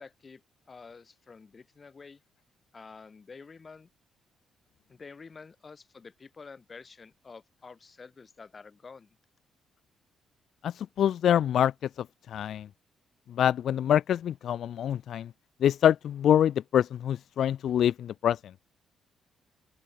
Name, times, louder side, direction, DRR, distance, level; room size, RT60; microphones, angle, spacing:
voice 1, 0.0-2.2 2.7-3.9 4.9-9.2, left 4 dB, 35° left, 6.2 m, -49 dB
voice 2, 10.6-11.7 12.3-12.7 13.4-15.3 15.6-18.4, left 10 dB, 65° left, 0.4 m, -25 dB
open air
cardioid pair, 90°, 0 cm